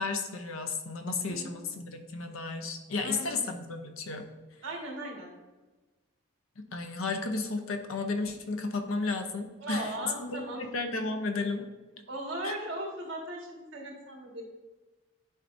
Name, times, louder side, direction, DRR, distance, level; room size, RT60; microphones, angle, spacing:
voice 1, 0.0-4.3 6.6-11.7 12.4-12.5, left 3 dB, 75° left, 6 dB, 0.7 m, -33 dB
voice 2, 1.3-1.6 3.0-3.4 4.6-5.3 9.6-10.7 12.1-14.4, right 1 dB, 55° right, -2 dB, 1.8 m, -38 dB
11.0 x 4.1 x 2.6 m, 1.2 s
head